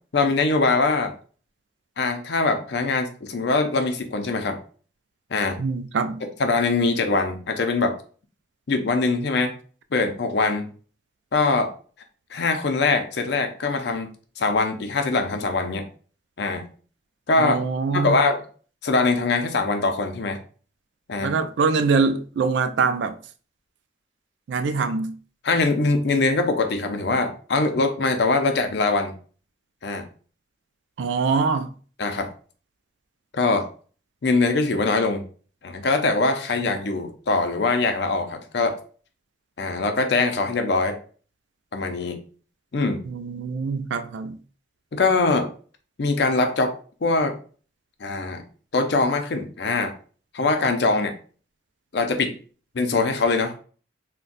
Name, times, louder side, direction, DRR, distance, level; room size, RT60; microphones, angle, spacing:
voice 1, 0.1-1.1 2.0-4.6 5.3-5.6 6.2-8.0 8.7-9.6 9.9-10.7 11.3-11.7 12.3-14.1 14.4-15.9 16.4-16.6 17.3-17.6 17.9-18.4 18.8-20.4 21.1-21.3 25.4-29.1 29.8-30.0 32.0-32.3 33.3-33.7 34.2-35.2 35.6-38.8 39.6-41.0 41.7-42.2 42.7-43.0 44.9-45.5 46.0-47.4 48.0-48.4 48.7-50.0 50.3-51.1 51.9-52.4 52.7-53.5, left 3 dB, 65° left, 0.5 m, -22 dB
voice 2, 5.6-6.2 17.4-18.2 21.2-23.2 24.5-25.1 31.0-31.7 43.1-44.4, right 4 dB, 75° right, 0.3 m, -23 dB
3.9 x 2.2 x 2.5 m
head